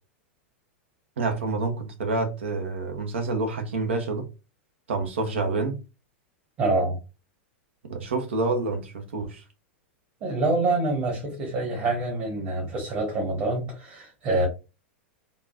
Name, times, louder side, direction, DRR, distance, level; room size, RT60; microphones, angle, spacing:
voice 1, 1.2-4.3 4.9-5.8 7.9-9.4, right 3 dB, 70° right, 0.9 m, -28 dB
voice 2, 6.6-7.0 10.2-14.5, right 2 dB, 40° right, 1.5 m, -26 dB
3.7 x 2.5 x 2.5 m
figure-of-eight pair, 95°, 7 cm